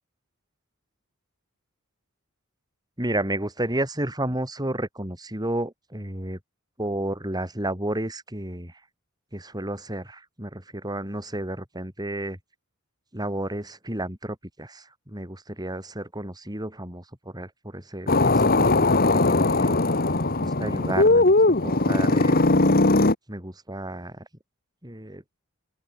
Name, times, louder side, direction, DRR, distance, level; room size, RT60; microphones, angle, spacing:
voice 1, 3.0-6.4 6.8-8.7 9.3-12.4 13.1-19.8 20.2-21.3 21.6-22.5 23.3-24.3 24.8-25.2, right 1 dB, 20° right, 5.8 m, -32 dB
sound 1, 18.1-23.2, left 2 dB, 45° left, 1.9 m, -19 dB
open air
head